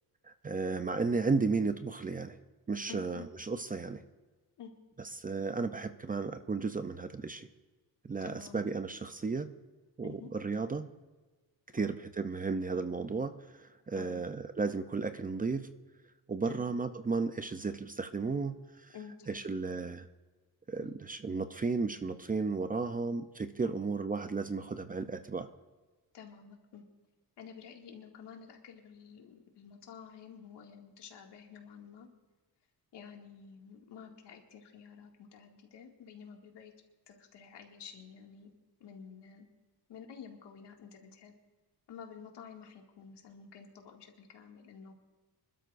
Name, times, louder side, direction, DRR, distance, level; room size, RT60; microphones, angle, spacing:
voice 1, 0.2-2.4 2.7-4.0 5.2-7.5 8.0-9.5 10.0-10.9 11.7-15.7 16.3-18.9 19.3-20.1 20.7-25.5, right 4 dB, 20° right, 10 dB, 0.5 m, -34 dB
voice 2, 2.9-3.3 4.6-4.7 8.2-8.6 10.0-10.3 11.8-11.9 13.9-14.2 16.4-16.6 18.9-19.4 20.8-20.9 23.6-23.8 26.1-26.8 27.4-32.1 32.9-36.7 37.1-38.5 38.8-39.5 39.9-41.3 41.9-44.9, left 7 dB, 85° left, 1 dB, 2.2 m, -50 dB
25.5 x 12.5 x 2.5 m, 1.3 s
wide cardioid pair, 140°, 40 cm